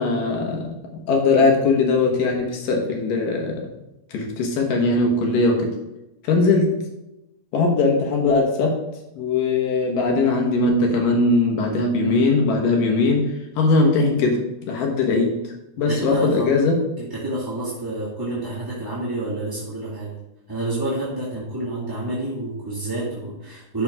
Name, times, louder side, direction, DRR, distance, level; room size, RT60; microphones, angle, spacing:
voice 1, 0.0-3.6 4.1-5.7 6.2-6.7 7.5-8.8 9.1-13.3 13.6-14.4 14.7-16.7, left 3 dB, 85° left, 1 dB, 3.2 m, -20 dB
voice 2, 15.9-16.5 17.0-20.1 20.5-23.8, right 2 dB, 10° right, -8 dB, 1.1 m, -28 dB
11.5 x 5.9 x 3.7 m, 0.94 s
omnidirectional pair, 3.7 m